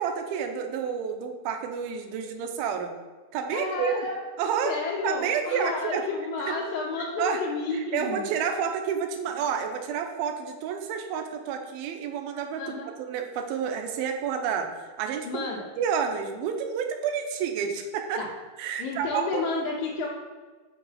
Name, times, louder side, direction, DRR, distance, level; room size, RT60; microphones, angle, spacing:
voice 1, 0.0-2.9 3.3-4.0 4.4-4.8 5.0-6.1 6.5-6.6 7.2-7.4 7.7-12.8 13.1-15.4 15.8-18.3 18.6-19.4, right 7 dB, 90° right, 5 dB, 2.5 m, -29 dB
voice 2, 3.5-4.2 4.6-8.3 12.6-12.9 15.2-15.7 18.2-18.3 18.8-20.1, left 3 dB, 65° left, -5 dB, 2.2 m, -31 dB
5.9 x 4.7 x 5.6 m, 1.4 s
omnidirectional pair, 4.2 m